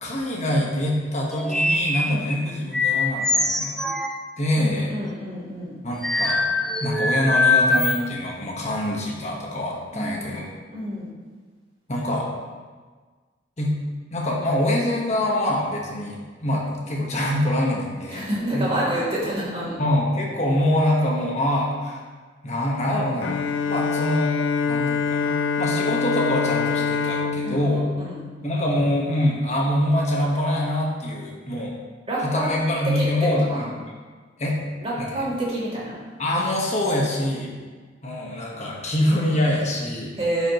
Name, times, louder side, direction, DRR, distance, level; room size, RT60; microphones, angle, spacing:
voice 1, 0.0-3.8 4.4-5.0 5.8-6.5 6.8-10.5 11.9-12.3 13.6-13.7 14.1-18.3 18.5-18.7 19.8-22.0 22.4-23.4 23.7-24.3 24.6-27.9 28.4-31.7 32.2-33.7 34.4-34.6 35.0-35.2 36.2-37.5 38.0-40.2, left 1 dB, 35° left, -2 dB, 1.4 m, -24 dB
sound 1, 1.3-2.4 2.7-4.1 6.0-8.0, left 3 dB, 5° left, 0.3 m, -22 dB
voice 2, 4.6-5.7 9.9-10.3 10.7-11.1 18.1-19.8 27.4-27.6 28.0-28.3 32.1-32.6 32.8-33.0 33.5-33.7 34.8-36.0 40.2-40.5, right 1 dB, 30° right, -8 dB, 2.5 m, -28 dB
Bowed string instrument, 23.2-29.1, left 6 dB, 85° left, 0.5 m, -26 dB
11.0 x 5.2 x 3.1 m, 1.5 s
head